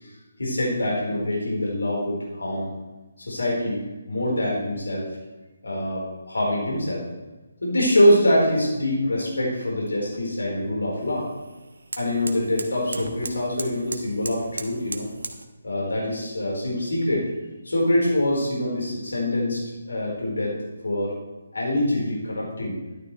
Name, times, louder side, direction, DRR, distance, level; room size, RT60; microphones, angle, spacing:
voice 1, 0.4-2.7 3.2-5.1 5.6-7.0 7.6-11.3 12.0-15.1 15.6-17.3 17.6-20.6 20.8-21.1 21.5-22.8, left 1 dB, 70° left, -3 dB, 4.5 m, -24 dB
sound 1, 8.7-15.4, right 2 dB, 70° right, 1.2 m, -39 dB
13.0 x 11.5 x 3.3 m, 1.2 s
figure-of-eight pair, 145°, 0 cm